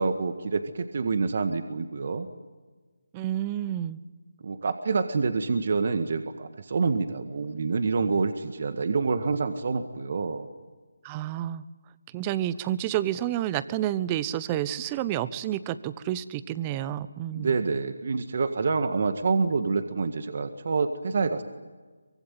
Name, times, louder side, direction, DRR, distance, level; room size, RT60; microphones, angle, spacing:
voice 1, 0.0-2.3 4.4-10.5 17.3-21.4, right 4 dB, 50° right, 8 dB, 1.8 m, -27 dB
voice 2, 3.1-4.0 11.0-11.6 12.1-17.5, right 12 dB, 20° right, 16 dB, 0.9 m, -29 dB
24.5 x 23.0 x 9.2 m, 1.4 s
figure-of-eight pair, 160°, 0 cm